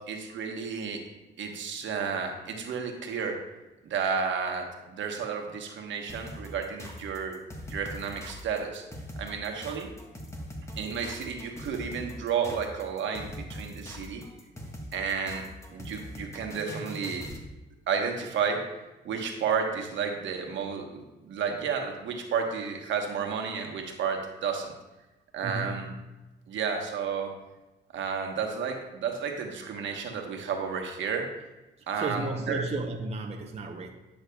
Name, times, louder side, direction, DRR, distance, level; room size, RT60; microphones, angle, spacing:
voice 1, 0.1-1.0 1.4-3.4 3.8-7.4 7.7-8.8 9.2-9.9 10.8-14.2 14.9-15.4 15.7-17.3 17.9-18.7 19.0-24.7 25.3-25.9 26.5-27.3 27.9-31.3 31.9-32.6, right 6 dB, 70° right, 3 dB, 1.2 m, -32 dB
sound 1, 6.1-17.5, equal, 15° left, 1.3 m, -41 dB
voice 2, 25.4-25.9 31.8-33.9, right 3 dB, 30° right, 2 dB, 0.7 m, -34 dB
10.0 x 6.3 x 2.3 m, 1.0 s
cardioid pair, 90°, 20 cm